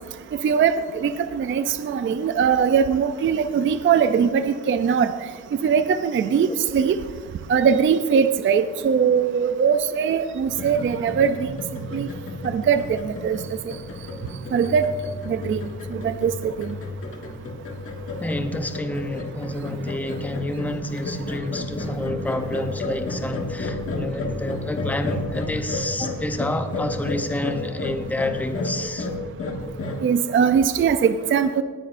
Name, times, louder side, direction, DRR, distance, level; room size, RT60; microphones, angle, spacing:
voice 1, 0.4-5.1 5.6-7.0 7.5-11.3 11.9-12.1 12.5-13.0 13.2-13.4 14.5-14.9 15.3-15.6 15.9-16.5 30.0-31.6, right 7 dB, 40° right, 10 dB, 0.4 m, -21 dB
sound 1, 10.5-30.0, left 2 dB, 40° left, 1.3 m, -32 dB
voice 2, 18.2-29.1, left 1 dB, 5° left, 7 dB, 0.6 m, -29 dB
18.5 x 9.6 x 2.5 m, 1.5 s
wide cardioid pair, 145°, 33 cm